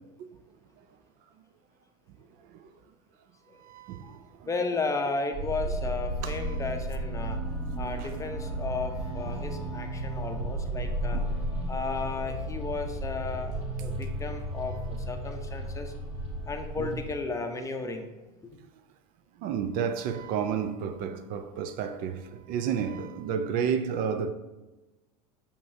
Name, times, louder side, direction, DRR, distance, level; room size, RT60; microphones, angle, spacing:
voice 1, 3.6-4.5 6.2-6.6 7.8-8.1 9.2-9.4 11.1-11.4 16.8-17.0 19.4-24.3, right 7 dB, 50° right, 0.5 m, -32 dB
voice 2, 4.5-7.4 7.8-11.2 11.7-13.5 13.8-15.9 16.5-18.1, left 3 dB, 15° left, 0.7 m, -34 dB
sound 1, 5.3-17.1, right 1 dB, 35° right, 2.0 m, -33 dB
6.6 x 5.4 x 2.7 m
hypercardioid pair, 105°, 18 cm